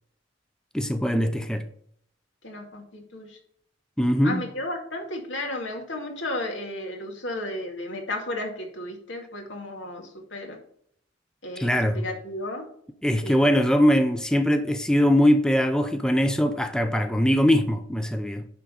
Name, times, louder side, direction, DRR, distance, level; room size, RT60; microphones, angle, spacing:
voice 1, 0.7-1.7 4.0-4.4 11.6-12.1 13.0-18.5, equal, 5° left, 0.6 m, -22 dB
voice 2, 2.4-3.4 4.2-10.6 11.4-12.7 13.2-13.4, left 1 dB, 85° left, 2.1 m, -34 dB
10.0 x 3.7 x 7.0 m
head